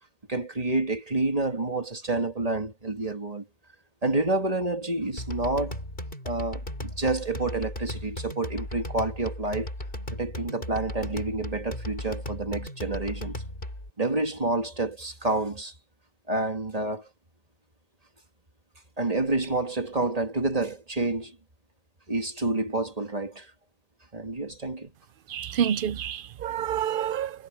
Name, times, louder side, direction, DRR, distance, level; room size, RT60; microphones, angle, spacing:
voice 1, 0.3-3.4 4.0-5.8 6.2-9.7 10.1-13.4 14.0-15.7 16.3-17.1 19.0-21.4 22.1-23.5 24.1-24.9, right 2 dB, 35° right, 2.4 m, -28 dB
sound 1, 5.2-13.9, left 1 dB, 50° left, 6.0 m, -36 dB
voice 2, 25.3-27.3, right 9 dB, 60° right, 0.6 m, -28 dB
omnidirectional pair, 1.2 m